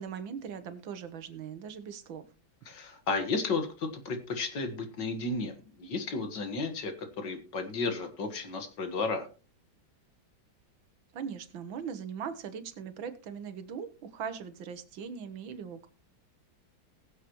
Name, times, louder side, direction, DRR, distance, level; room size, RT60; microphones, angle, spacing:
voice 1, 0.0-2.3 11.1-15.9, right 7 dB, 75° right, 10 dB, 1.8 m, -40 dB
voice 2, 2.7-5.5 5.8-9.3, left 3 dB, 65° left, 7 dB, 2.1 m, -33 dB
20.0 x 7.7 x 3.0 m, 0.34 s
omnidirectional pair, 2.2 m